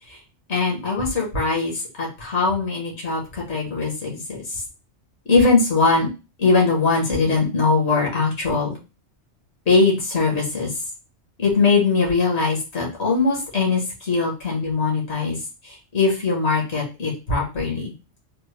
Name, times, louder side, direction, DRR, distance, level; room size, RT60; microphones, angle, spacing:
voice 1, 0.5-4.6 5.2-6.1 6.4-8.8 9.6-10.7 11.4-17.9, left 4 dB, 70° left, -2 dB, 1.5 m, -21 dB
3.5 x 2.1 x 3.2 m, 0.29 s
omnidirectional pair, 1.2 m